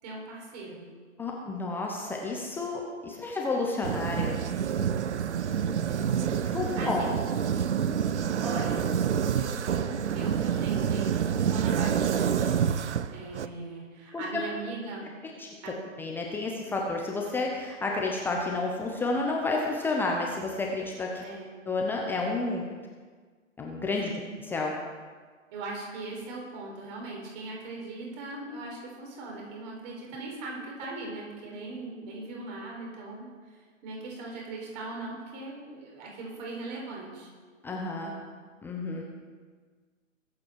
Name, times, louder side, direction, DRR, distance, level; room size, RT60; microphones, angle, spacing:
voice 1, 0.0-0.8 5.3-6.1 6.4-7.2 8.4-8.9 9.3-12.6 13.1-15.1 15.6-15.8 21.2-21.6 24.0-24.3 25.5-37.3, right 2 dB, 35° right, -1 dB, 4.7 m, -40 dB
voice 2, 1.2-4.4 6.5-7.1 14.1-14.4 15.4-15.5 16.0-21.2 21.7-22.6 23.6-24.1 24.4-24.7 37.6-38.1 38.6-39.0, left 3 dB, 5° left, -1 dB, 0.7 m, -30 dB
sound 1, 3.8-13.5, right 8 dB, 60° right, 0.8 m, -28 dB
22.0 x 8.5 x 4.7 m, 1.5 s
figure-of-eight pair, 130°, 39 cm